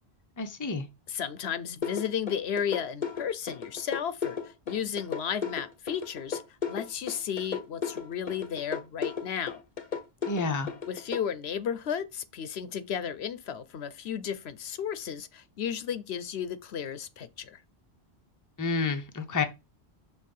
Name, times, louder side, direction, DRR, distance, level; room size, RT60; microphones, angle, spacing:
voice 1, 0.4-0.9 10.3-10.7 18.6-19.4, left 4 dB, 20° left, 0.7 m, -29 dB
voice 2, 1.1-6.4 6.7-9.6 10.9-17.6, left 8 dB, 75° left, 0.9 m, -34 dB
sound 1, 1.8-11.2, left 6 dB, 50° left, 0.9 m, -34 dB
6.5 x 3.4 x 5.4 m
omnidirectional pair, 1.1 m